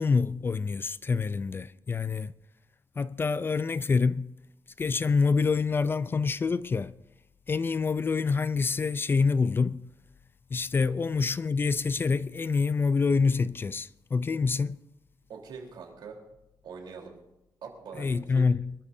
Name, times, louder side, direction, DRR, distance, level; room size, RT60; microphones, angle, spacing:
voice 1, 0.0-2.3 3.0-4.3 4.8-6.9 7.5-9.8 10.5-14.8 18.0-18.7, left 4 dB, 30° left, 0.4 m, -26 dB
voice 2, 15.3-16.2 16.6-17.1 17.6-18.5, right 5 dB, 75° right, 3.6 m, -43 dB
25.0 x 13.0 x 2.7 m
cardioid pair, 125°, 8 cm